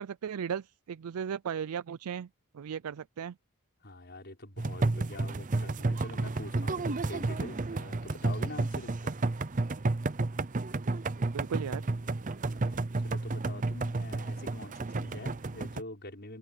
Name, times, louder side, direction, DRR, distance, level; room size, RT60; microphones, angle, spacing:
voice 1, 0.0-2.3 2.5-3.4 11.3-11.8, right 7 dB, 80° right, 0.4 m, -36 dB
voice 2, 3.8-9.2 12.5-16.4, left 2 dB, 45° left, 5.9 m, -45 dB
sound 1, 4.6-15.8, right 2 dB, 35° right, 0.6 m, -31 dB
head